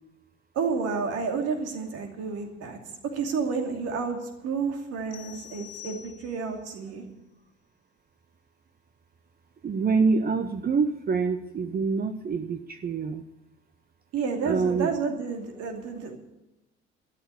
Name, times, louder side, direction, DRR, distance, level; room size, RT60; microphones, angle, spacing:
voice 1, 0.5-2.8 3.0-7.0 14.1-16.2, right 5 dB, 50° right, 4 dB, 2.8 m, -30 dB
sound 1, 5.1-6.6, left 14 dB, 55° left, 0.9 m, -46 dB
voice 2, 9.6-13.2 14.4-14.9, right 4 dB, 30° right, 9 dB, 0.9 m, -26 dB
13.0 x 12.5 x 8.3 m, 0.89 s
figure-of-eight pair, 55°, 32 cm